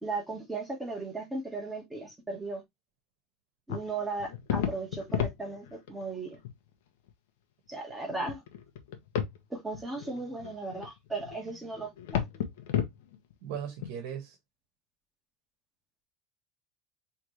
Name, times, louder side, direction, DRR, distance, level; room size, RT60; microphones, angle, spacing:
voice 1, 0.0-2.6 3.7-6.4 7.7-8.4 9.5-12.2, right 3 dB, 10° right, 2.2 m, -36 dB
sound 1, 3.7-6.0 6.3-6.5 7.1-7.2 7.9-9.4 9.7-13.9, left 9 dB, 85° left, 1.1 m, -33 dB
voice 2, 13.4-14.4, right 8 dB, 70° right, 1.4 m, -38 dB
4.9 x 3.6 x 3.0 m
supercardioid pair, 140°, 0 cm